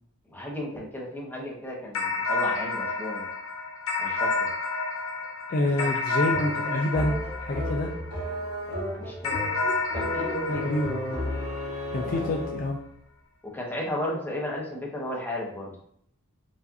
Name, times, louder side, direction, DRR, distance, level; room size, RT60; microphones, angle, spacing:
voice 1, 0.3-3.2 4.0-4.5 5.8-5.9 6.7-7.0 8.7-9.4 9.9-10.6 12.0-12.3 13.5-15.8, left 1 dB, 10° left, -3 dB, 0.8 m, -34 dB
sound 1, 1.9-8.5 9.2-12.0, left 3 dB, 70° left, 0.7 m, -30 dB
voice 2, 5.5-7.9 10.5-11.2 11.9-12.8, left 1 dB, 40° left, 1 dB, 0.3 m, -27 dB
sound 2, 6.3-12.8, left 1 dB, 85° right, 1.2 m, -33 dB
4.7 x 2.4 x 2.7 m, 0.66 s
head